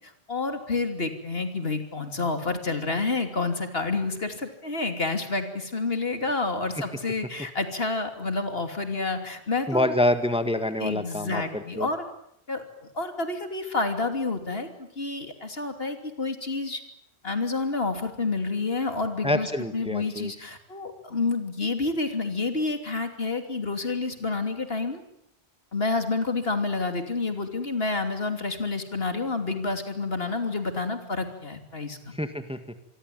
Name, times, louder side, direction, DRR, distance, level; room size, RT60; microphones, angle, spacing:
voice 1, 0.3-10.0 10.8-12.0 12.5-12.6 12.9-16.8 17.2-25.0 25.7-32.1, left 3 dB, 65° left, 7 dB, 3.2 m, -29 dB
voice 2, 9.7-11.9 19.2-20.3 32.1-32.8, left 1 dB, 5° right, 9 dB, 1.6 m, -27 dB
26.5 x 22.5 x 9.3 m, 0.74 s
omnidirectional pair, 1.1 m